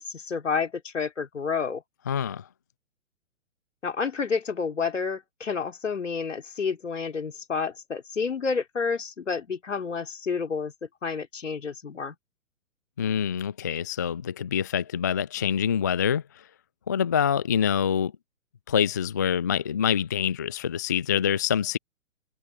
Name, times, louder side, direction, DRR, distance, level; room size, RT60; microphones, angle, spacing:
voice 1, 0.0-1.8 3.8-10.7 11.0-12.2, left 5 dB, 65° left, 4.8 m, -30 dB
voice 2, 2.1-2.4 13.0-16.2 16.9-18.1 18.7-21.8, left 8 dB, 15° left, 0.4 m, -25 dB
figure-of-eight pair, 120°, 39 cm